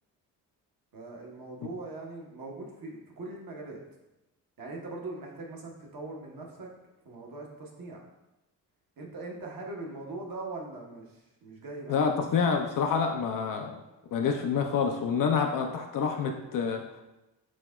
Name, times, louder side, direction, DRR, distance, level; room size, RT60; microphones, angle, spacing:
voice 1, 0.9-3.8 4.6-6.7 7.0-8.0 9.0-12.1, right 2 dB, 45° right, -1 dB, 1.0 m, -41 dB
voice 2, 11.9-13.7 14.1-16.8, left 6 dB, 45° left, 3 dB, 0.5 m, -27 dB
6.1 x 2.1 x 2.2 m, 0.97 s
hypercardioid pair, 40°, 47 cm